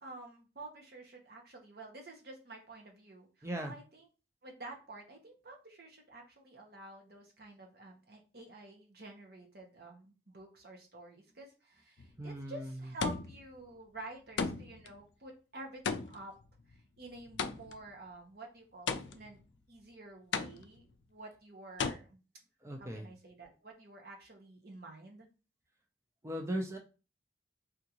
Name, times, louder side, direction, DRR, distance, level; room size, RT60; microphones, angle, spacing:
voice 1, 0.0-4.1 4.4-16.3 17.0-19.4 19.7-22.2 22.8-25.3, right 2 dB, 55° right, 1 dB, 0.9 m, -50 dB
voice 2, 3.4-3.7 12.2-12.8 22.6-23.1 26.2-26.8, right 1 dB, 15° right, 2 dB, 0.5 m, -38 dB
sound 1, 12.0-12.4 13.0-13.6 14.4-14.9 15.8-17.9 18.9-19.4 20.3-20.9 21.8-21.9, left 5 dB, 80° left, 0.4 m, -36 dB
3.6 x 2.5 x 2.9 m, 0.33 s
head